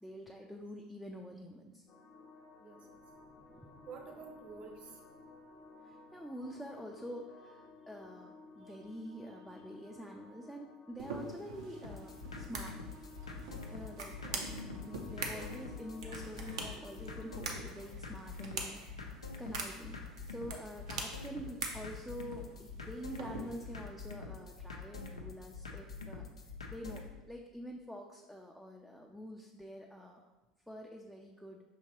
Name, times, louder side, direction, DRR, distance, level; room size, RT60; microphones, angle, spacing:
voice 1, 0.0-1.8 3.5-3.7 5.8-12.8 13.7-14.5 14.8-26.2 26.7-30.3 30.7-31.6, equal, ahead, 0 dB, 0.4 m, -47 dB
sound 1, 1.9-17.4, left 3 dB, 50° left, 0.8 m, -56 dB
voice 2, 2.6-3.0 3.9-5.0 14.1-14.2 14.8-15.5, right 5 dB, 45° right, 3 dB, 0.8 m, -51 dB
sound 2, 11.0-23.8, right 3 dB, 75° right, 0.6 m, -45 dB
sound 3, 11.8-27.1, left 4 dB, 90° left, 0.4 m, -46 dB
5.6 x 2.9 x 2.8 m, 1.1 s
hypercardioid pair, 75°, 3 cm